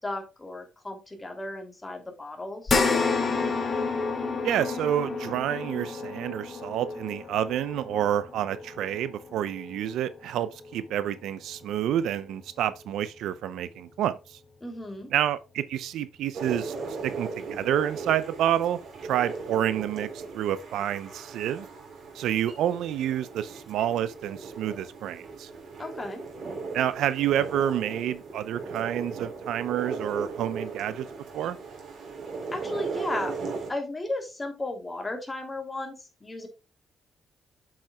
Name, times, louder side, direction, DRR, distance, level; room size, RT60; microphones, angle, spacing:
voice 1, 0.0-2.8 14.6-15.1 25.8-26.2 32.5-33.4 33.7-36.5, left 2 dB, 20° left, 2.8 m, -35 dB
sound 1, 2.7-11.3 11.7-11.8 13.3-13.4, left 4 dB, 35° left, 2.7 m, -30 dB
voice 2, 4.4-14.4 15.1-16.8 17.0-21.7 22.1-25.5 26.7-31.1 31.3-31.6, right 11 dB, 80° right, 0.6 m, -29 dB
sound 2, 16.3-33.7, right 4 dB, 60° right, 3.5 m, -37 dB
7.6 x 7.4 x 2.3 m
cardioid pair, 90°, 0 cm